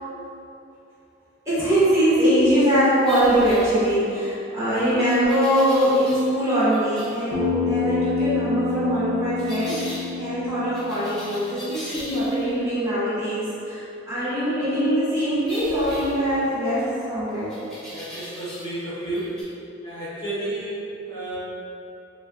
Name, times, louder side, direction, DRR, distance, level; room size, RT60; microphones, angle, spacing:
voice 1, 1.4-17.5, equal, 15° right, -13 dB, 0.8 m, -22 dB
sound 1, 3.0-4.2 5.1-6.4 6.7-7.2 9.4-10.0 10.7-12.6 15.5-16.7 17.5-18.8 19.1-19.4, equal, 5° left, 0.4 m, -39 dB
Bass guitar, 7.3-11.6, left 4 dB, 65° right, 0.5 m, -27 dB
voice 2, 17.9-19.4 19.8-21.4, right 2 dB, 25° left, -12 dB, 1.0 m, -32 dB
3.7 x 2.2 x 2.5 m, 2.8 s
head